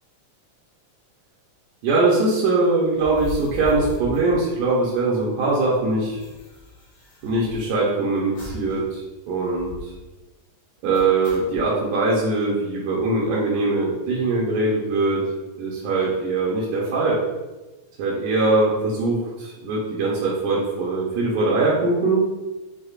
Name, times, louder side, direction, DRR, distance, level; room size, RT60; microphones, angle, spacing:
voice 1, 1.8-6.2 7.2-9.9 10.8-15.2 15.6-17.2 18.0-22.2, right 3 dB, 85° right, -5 dB, 2.1 m, -22 dB
sound 1, 2.9-5.2 5.5-5.6 5.7-7.9 8.4-8.8 9.1-9.2 9.5-10.0 10.9-11.7, left 3 dB, 65° left, 1.3 m, -38 dB
6.3 x 2.1 x 2.4 m, 1.1 s
omnidirectional pair, 3.4 m